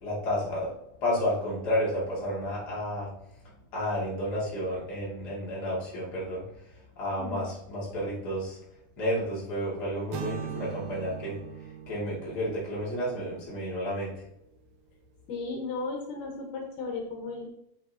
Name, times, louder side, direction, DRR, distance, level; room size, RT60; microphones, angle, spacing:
voice 1, 0.0-0.7 1.0-3.2 3.7-8.6 9.0-11.4 11.9-14.2, equal, 35° left, -5 dB, 2.5 m, -31 dB
voice 2, 7.1-7.5 15.3-17.5, left 3 dB, 80° left, 0 dB, 2.8 m, -35 dB
sound 1, 10.1-14.1, right 8 dB, 85° right, 2.3 m, -41 dB
7.5 x 5.8 x 2.8 m, 0.78 s
omnidirectional pair, 3.6 m